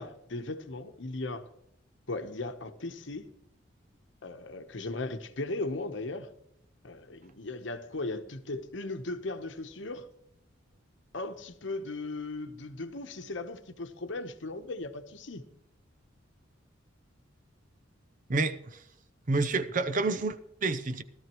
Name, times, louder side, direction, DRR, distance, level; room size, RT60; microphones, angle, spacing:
voice 1, 0.0-1.5 2.1-3.3 4.2-6.3 6.8-10.1 11.1-15.4, left 2 dB, 65° left, 1.0 m, -37 dB
voice 2, 18.3-18.8 19.3-21.0, right 3 dB, 40° right, 0.7 m, -29 dB
17.0 x 13.0 x 3.0 m
head